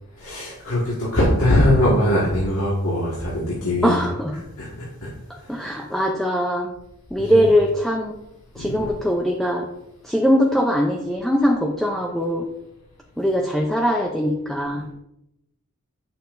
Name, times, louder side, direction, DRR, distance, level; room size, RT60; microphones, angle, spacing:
voice 1, 0.2-4.0 4.6-5.1 5.4-5.5 7.2-7.4 8.5-8.7, left 1 dB, 65° left, -6 dB, 1.8 m, -21 dB
voice 2, 3.8-4.4 5.5-6.7 7.1-8.2 8.6-9.7 10.0-12.5 13.2-14.9, equal, ahead, 0 dB, 0.6 m, -21 dB
8.7 x 6.8 x 2.6 m, 0.84 s
head